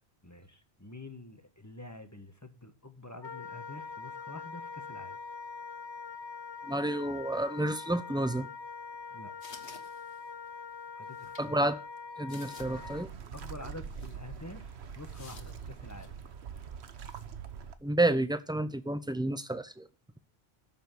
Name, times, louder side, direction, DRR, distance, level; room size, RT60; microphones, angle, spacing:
voice 1, 0.2-5.2 9.1-9.3 10.9-11.6 13.3-16.1, left 2 dB, 15° left, 7 dB, 1.5 m, -47 dB
Wind instrument woodwind instrument, 3.2-13.1, left 5 dB, 35° left, 0.5 m, -43 dB
voice 2, 6.7-8.5 11.4-11.8 12.2-13.1 17.8-19.9, right 1 dB, 5° right, 11 dB, 0.7 m, -30 dB
sound 1, 9.4-10.5 11.1-11.5 12.0-12.1 12.3-12.9 13.2-13.3 13.9-14.2 15.1-16.2 17.0-17.3, left 4 dB, 65° left, 1.7 m, -52 dB
sound 2, 12.6-17.8, right 7 dB, 90° right, 1.2 m, -44 dB
12.5 x 7.4 x 6.1 m, 0.34 s
omnidirectional pair, 1.1 m